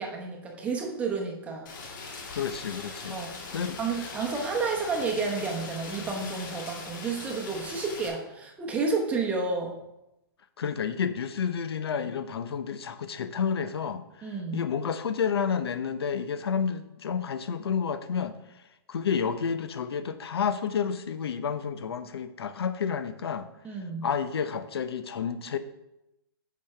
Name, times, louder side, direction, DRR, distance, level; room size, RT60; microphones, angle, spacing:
voice 1, 0.0-1.7 3.1-3.4 3.8-9.8 14.2-14.6 23.6-24.1, right 4 dB, 10° right, 0 dB, 0.8 m, -31 dB
Rain, 1.7-8.1, left 4 dB, 50° left, 2.1 m, -41 dB
voice 2, 2.3-3.2 3.5-3.8 10.6-18.4 18.9-23.5 24.0-25.6, left 7 dB, 85° left, 11 dB, 0.7 m, -30 dB
8.3 x 6.0 x 3.3 m, 0.91 s
hypercardioid pair, 160°, 13 cm